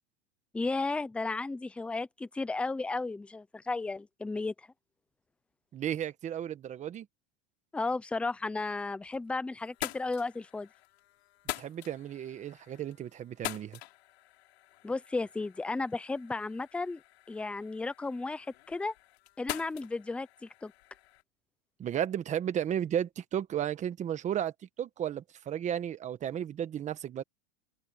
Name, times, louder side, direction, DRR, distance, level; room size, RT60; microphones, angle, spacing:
voice 1, 0.5-4.5 7.7-10.7 14.8-17.0 17.3-18.9 19.4-20.7, left 3 dB, 5° left, 0.6 m, -34 dB
voice 2, 5.7-7.1 11.6-13.8 21.8-27.2, right 10 dB, 20° right, 1.3 m, -34 dB
sound 1, 8.7-9.3 9.6-21.2, left 17 dB, 70° left, 3.2 m, -45 dB
open air
supercardioid pair, 150°, 33 cm